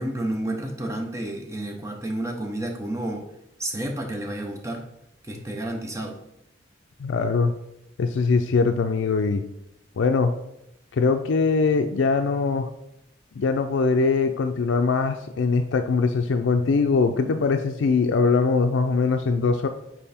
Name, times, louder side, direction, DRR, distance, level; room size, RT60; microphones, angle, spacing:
voice 1, 0.0-3.2 3.6-4.8 5.2-6.2, right 1 dB, 15° right, 2 dB, 0.8 m, -30 dB
voice 2, 7.0-7.6 8.0-9.4 10.0-10.3 10.9-12.7 13.4-19.7, left 4 dB, 70° left, 7 dB, 0.4 m, -22 dB
5.6 x 4.5 x 4.2 m, 0.82 s
head